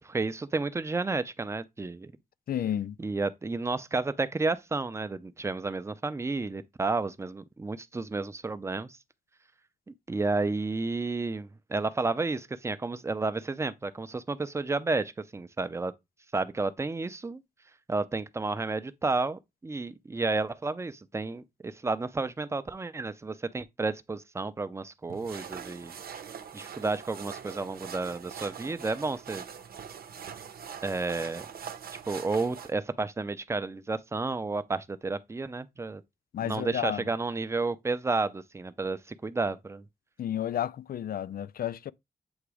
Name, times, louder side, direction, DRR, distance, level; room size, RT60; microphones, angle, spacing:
voice 1, 0.0-2.1 3.0-9.0 10.1-15.9 16.3-17.4 17.9-25.9 26.5-29.4 30.8-31.4 32.1-36.0 36.4-39.8, right 3 dB, 20° right, 0.5 m, -31 dB
voice 2, 2.5-3.0 36.3-37.1 40.2-41.9, left 10 dB, 75° left, 0.4 m, -31 dB
sound 1, 25.1-32.7, right 7 dB, 85° right, 0.8 m, -43 dB
8.0 x 2.9 x 4.8 m
wide cardioid pair, 165°, 15 cm